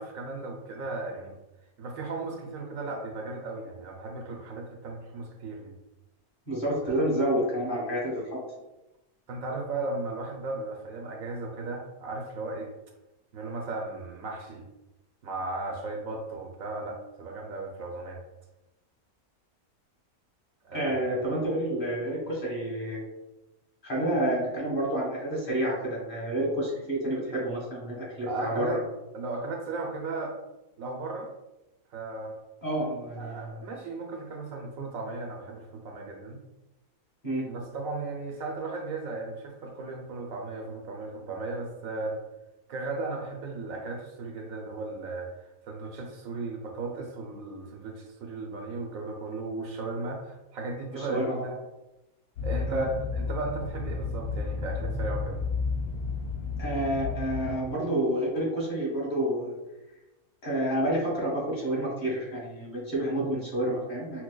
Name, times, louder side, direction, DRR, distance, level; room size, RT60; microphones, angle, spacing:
voice 1, 0.0-1.3 1.8-5.7 6.8-7.0 9.3-12.7 13.3-14.6 15.2-18.2 20.6-21.0 28.2-28.8 29.1-30.3 30.8-31.3 31.9-32.4 33.2-36.4 37.5-42.2 42.7-51.6 52.4-55.4, right 3 dB, 70° right, 1 dB, 1.0 m, -36 dB
voice 2, 6.5-8.4 20.7-23.0 23.8-28.7 32.6-33.5 37.2-37.5 50.9-51.3 52.7-52.8 56.6-59.5 60.4-64.2, right 1 dB, 35° left, -5 dB, 1.3 m, -29 dB
sound 1, 52.4-57.5, left 4 dB, 85° left, 1.1 m, -32 dB
5.9 x 2.1 x 2.2 m, 0.98 s
omnidirectional pair, 1.5 m